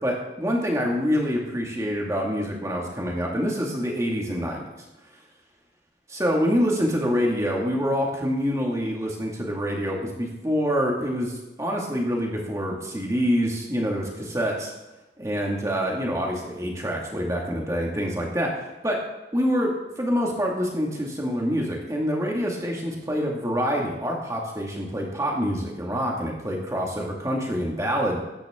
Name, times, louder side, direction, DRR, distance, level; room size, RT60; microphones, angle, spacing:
voice 1, 0.0-4.7 6.1-14.7 15.2-19.0 19.3-28.2, equal, 15° right, -1 dB, 2.2 m, -26 dB
14.0 x 9.9 x 3.8 m, 1.0 s
head